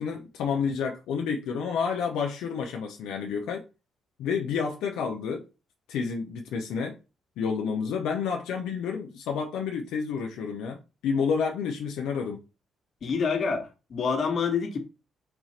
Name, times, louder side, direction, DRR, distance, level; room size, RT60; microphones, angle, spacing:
voice 1, 0.0-3.7 4.2-5.5 5.9-7.0 7.4-12.4, left 6 dB, 90° left, 0.6 m, -30 dB
voice 2, 13.0-14.8, left 5 dB, 55° left, 1.4 m, -27 dB
4.5 x 2.4 x 4.2 m
cardioid pair, 90°, 0 cm